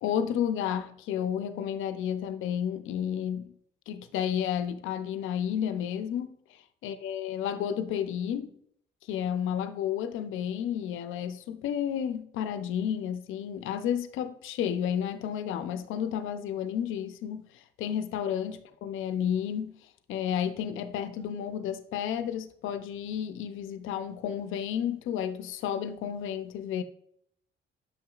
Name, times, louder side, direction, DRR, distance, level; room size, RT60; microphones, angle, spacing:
voice 1, 0.0-3.5 3.9-6.3 6.8-8.5 9.1-17.4 17.8-19.7 20.1-26.8, left 9 dB, 85° left, 0.6 m, -31 dB
7.8 x 5.8 x 2.4 m
cardioid pair, 90°, 20 cm